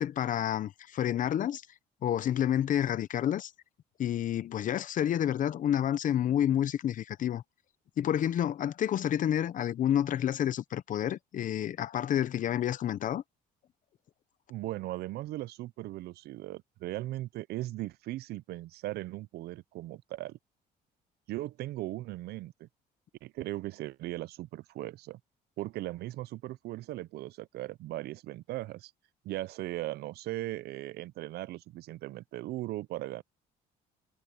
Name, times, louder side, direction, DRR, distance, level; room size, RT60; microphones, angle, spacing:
voice 1, 0.0-1.6 2.0-3.5 4.0-7.4 8.0-13.2, left 10 dB, 50° left, 0.8 m, -29 dB
voice 2, 14.5-20.4 21.3-22.7 23.2-25.2 25.6-28.9 29.2-33.2, right 16 dB, 70° right, 0.6 m, -38 dB
cardioid pair, 110°, 17 cm